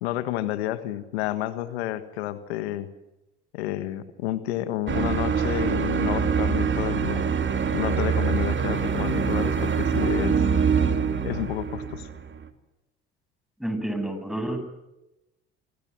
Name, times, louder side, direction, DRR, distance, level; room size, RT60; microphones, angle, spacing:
voice 1, 0.0-2.9 3.5-7.3 7.7-10.4 11.2-12.1, left 14 dB, 80° left, 1.6 m, -30 dB
sound 1, 4.9-12.5, right 6 dB, 35° right, 2.8 m, -24 dB
voice 2, 13.6-14.6, right 1 dB, ahead, 7.3 m, -29 dB
27.0 x 26.0 x 6.2 m
hypercardioid pair, 60°, 32 cm